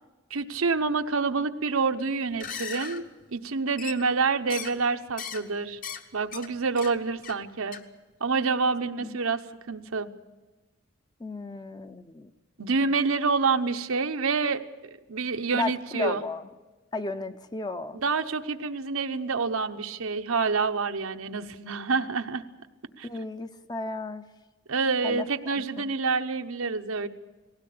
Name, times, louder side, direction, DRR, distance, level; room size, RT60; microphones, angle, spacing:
voice 1, 0.3-5.8 6.1-7.8 8.2-9.4 9.7-10.1 12.6-14.6 15.1-16.2 17.9-22.4 23.0-23.1 24.7-27.1, right 4 dB, 85° right, 7 dB, 1.0 m, -27 dB
sound 1, 2.3-3.0 3.8-4.2 4.5-4.8 5.2-5.4 5.7-6.0 6.3-6.5 6.8-6.9 7.2-7.4 7.7-7.8, left 6 dB, 40° left, 1.1 m, -37 dB
voice 2, 11.2-12.3 15.5-16.4 16.9-18.0 23.0-24.2 25.0-25.3 25.8-25.9, left 3 dB, 20° left, 10 dB, 0.6 m, -34 dB
20.0 x 17.0 x 8.6 m, 1.2 s
head